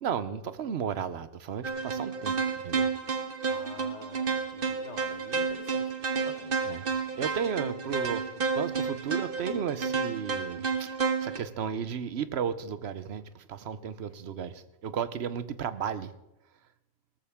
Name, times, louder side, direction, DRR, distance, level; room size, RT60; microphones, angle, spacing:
voice 1, 0.0-2.4 2.6-2.9 6.6-6.9 7.2-8.2 8.5-10.9 11.2-16.1, right 7 dB, 70° right, 1.0 m, -34 dB
sound 1, 1.6-11.4, right 5 dB, 55° right, 1.4 m, -31 dB
voice 2, 3.5-6.8, left 5 dB, 85° left, 1.5 m, -48 dB
18.5 x 14.0 x 3.6 m
omnidirectional pair, 1.1 m